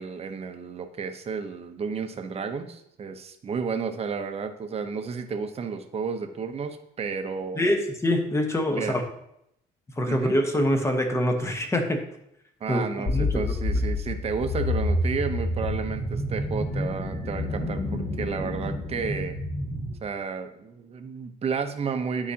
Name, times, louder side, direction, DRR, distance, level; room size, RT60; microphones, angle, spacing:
voice 1, 0.0-7.7 8.7-9.0 10.1-10.3 12.6-19.4 20.0-22.3, right 5 dB, 35° right, 7 dB, 0.8 m, -32 dB
voice 2, 7.5-9.0 10.0-12.0 12.7-13.4, left 1 dB, 15° left, 4 dB, 1.1 m, -25 dB
sound 1, 13.1-19.9, left 1 dB, 35° left, 1.9 m, -28 dB
11.0 x 4.9 x 2.8 m, 0.77 s
cardioid pair, 110°, 17 cm